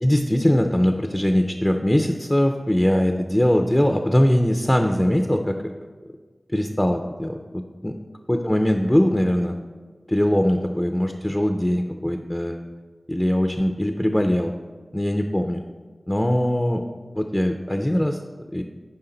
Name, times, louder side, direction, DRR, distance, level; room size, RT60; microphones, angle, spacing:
voice 1, 0.0-5.6 6.5-8.0 8.3-9.6 10.1-12.6 13.1-14.5 14.9-15.6 16.1-16.8 17.2-18.2 18.5-18.6, equal, 15° left, 5 dB, 0.5 m, -21 dB
9.9 x 4.9 x 3.9 m, 1.5 s
wide cardioid pair, 50°, 0 cm